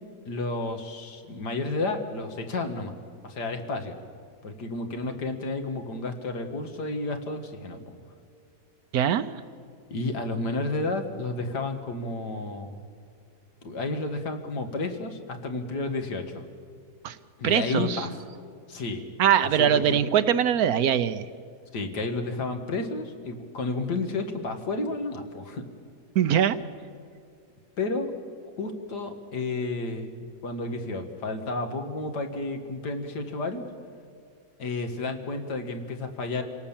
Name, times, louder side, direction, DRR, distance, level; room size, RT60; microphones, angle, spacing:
voice 1, 0.3-2.9 3.2-4.0 4.4-7.9 9.9-12.8 13.6-16.4 17.4-18.1 18.7-19.0 19.4-20.0 21.7-25.6 27.8-28.1 28.6-33.6 34.6-36.4, left 2 dB, 80° left, 5 dB, 2.3 m, -31 dB
voice 2, 8.9-9.2 17.0-17.2 17.4-18.1 19.2-21.2 26.1-26.6, right 9 dB, 70° right, 13 dB, 1.2 m, -22 dB
27.0 x 18.0 x 7.3 m, 2.2 s
omnidirectional pair, 1.7 m